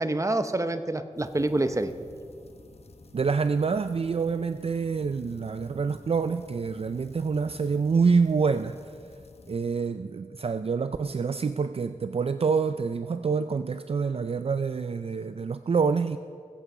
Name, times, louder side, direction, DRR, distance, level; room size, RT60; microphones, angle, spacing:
voice 1, 0.0-1.9, right 2 dB, 25° right, 9 dB, 0.8 m, -27 dB
sound 1, 1.2-9.6, left 2 dB, 55° left, 0.9 m, -51 dB
voice 2, 3.1-8.8 9.5-16.2, right 5 dB, 50° right, 11 dB, 0.4 m, -26 dB
21.0 x 8.3 x 5.0 m, 2.2 s
wide cardioid pair, 65°, 13 cm